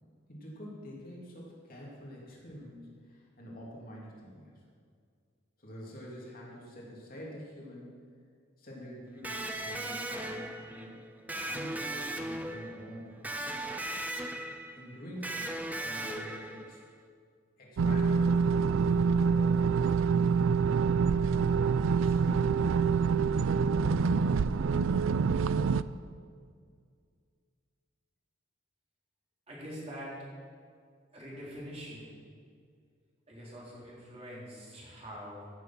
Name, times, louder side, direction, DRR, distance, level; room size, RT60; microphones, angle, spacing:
voice 1, 0.3-4.5 5.6-8.0 8.6-11.0 11.5-13.2 14.7-16.8 17.6-19.9 20.9-23.4 23.8-24.7, equal, 45° left, -4 dB, 2.7 m, -47 dB
Electric guitar, 9.2-16.9, right 1 dB, 10° right, 0.6 m, -38 dB
sound 1, 17.8-25.8, right 5 dB, 85° right, 0.4 m, -26 dB
voice 2, 29.5-30.1 31.1-32.1 33.3-35.5, equal, 30° right, -6 dB, 3.6 m, -44 dB
15.0 x 6.8 x 6.0 m, 2.1 s
head